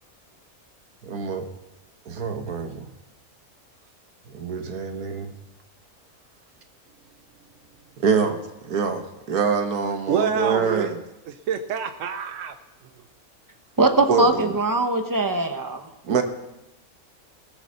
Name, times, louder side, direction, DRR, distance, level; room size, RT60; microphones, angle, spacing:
voice 1, 1.0-1.5 2.1-2.9 4.3-5.3 8.0-10.9 14.1-14.5 16.1-16.2, right 5 dB, 85° right, 6 dB, 1.7 m, -25 dB
voice 2, 10.1-10.9 11.3-12.6 16.1-16.2, right 7 dB, 65° right, 9 dB, 1.0 m, -27 dB
voice 3, 13.8-15.9, right 2 dB, 15° right, 6 dB, 1.0 m, -21 dB
19.0 x 8.1 x 6.6 m, 0.92 s
omnidirectional pair, 1.6 m